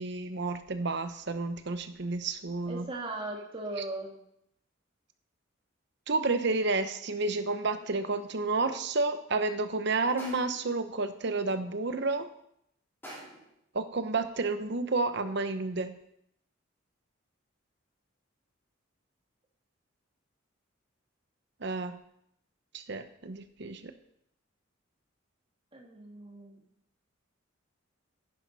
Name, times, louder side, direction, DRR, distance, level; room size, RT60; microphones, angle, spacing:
voice 1, 0.0-2.9 6.1-12.3 13.7-16.0 21.6-22.0 22.7-23.9, right 3 dB, 60° right, 10 dB, 0.9 m, -30 dB
voice 2, 2.7-4.2 25.7-26.6, right 2 dB, 25° right, 0 dB, 1.7 m, -38 dB
sound 1, 10.2-10.7 13.0-13.5, right 1 dB, 10° left, 3.8 m, -45 dB
10.5 x 10.5 x 4.1 m, 0.73 s
head